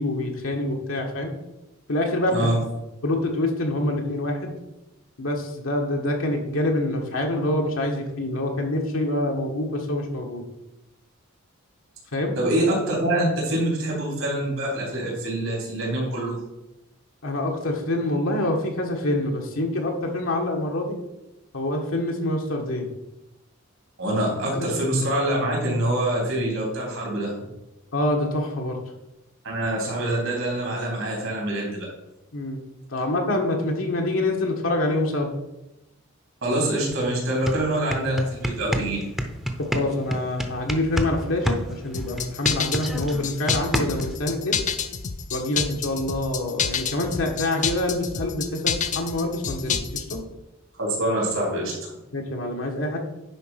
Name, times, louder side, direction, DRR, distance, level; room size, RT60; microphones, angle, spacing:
voice 1, 0.0-1.3 1.9-2.3 3.0-4.5 5.2-10.4 12.1-12.3 17.2-21.0 21.5-22.9 24.5-24.7 27.9-28.8 32.3-32.6 32.9-35.3 39.6-44.6 45.3-50.2 52.1-53.0, left 1 dB, 80° left, 1 dB, 1.4 m, -26 dB
voice 2, 12.4-16.4 24.0-27.3 29.4-31.9 36.4-39.1 50.8-51.9, right 1 dB, 75° right, -3 dB, 3.5 m, -25 dB
sound 1, 36.9-37.0 37.3-41.1 41.4-44.1, equal, ahead, 0.7 m, -27 dB
sound 2, 41.9-50.2, left 7 dB, 40° left, 0.6 m, -28 dB
10.0 x 4.0 x 5.8 m, 0.95 s
head